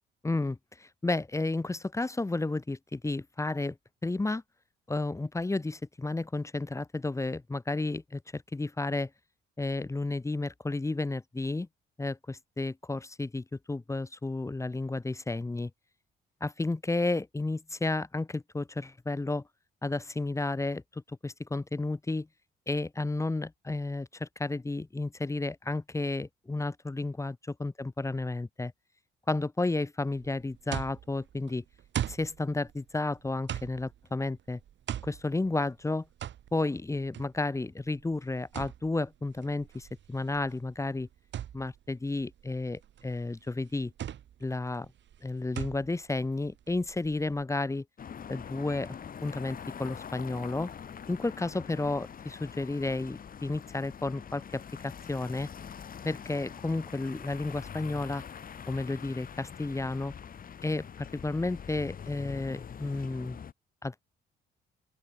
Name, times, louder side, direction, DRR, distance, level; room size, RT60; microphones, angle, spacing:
voice 1, 0.2-3.8 4.0-4.4 4.9-9.1 9.6-11.7 12.0-15.7 16.4-19.4 19.8-22.3 22.7-28.7 29.3-31.6 32.1-34.6 35.0-36.0 36.5-41.1 41.5-43.9 44.4-44.9 45.2-47.8 48.3-49.0 49.2-50.7 51.1-55.5 56.0-58.2 58.7-60.1 60.6-63.4 63.8-64.0, left 2 dB, 15° left, 1.1 m, -32 dB
sound 1, 30.2-47.4, right 10 dB, 70° right, 3.6 m, -41 dB
sound 2, 48.0-63.5, left 7 dB, 45° left, 1.4 m, -44 dB
open air
cardioid pair, 90°, 20 cm